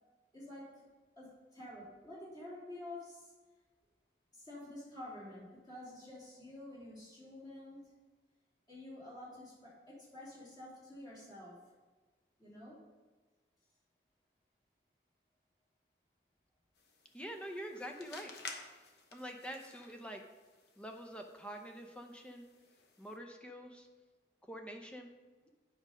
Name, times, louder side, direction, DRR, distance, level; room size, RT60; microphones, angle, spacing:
voice 1, 0.3-0.9 1.2-3.3 4.3-7.9 8.7-11.6 12.4-12.8, left 1 dB, 20° left, -9 dB, 3.0 m, -49 dB
sound 1, 16.7-23.2, left 4 dB, 65° left, 1.0 m, -53 dB
voice 2, 17.1-18.3 19.1-20.2 20.8-22.5 23.0-23.9 24.5-25.1, equal, 5° left, 3 dB, 0.7 m, -46 dB
8.7 x 5.1 x 5.4 m, 1.3 s
head